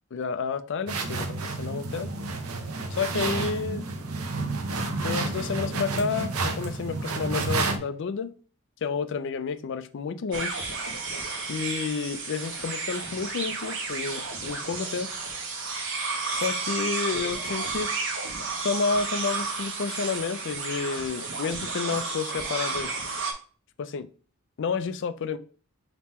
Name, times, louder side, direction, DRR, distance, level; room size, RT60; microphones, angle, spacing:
voice 1, 0.1-2.1 2.9-3.9 4.9-8.3 8.8-10.6 11.5-15.1 16.3-17.9 18.6-22.9 23.8-24.1 24.6-25.4, left 5 dB, 55° left, 0.4 m, -30 dB
sound 1, 0.9-7.8, right 3 dB, 80° right, 0.7 m, -30 dB
sound 2, 10.3-23.3, right 4 dB, 60° right, 1.0 m, -32 dB
3.6 x 2.9 x 4.1 m
head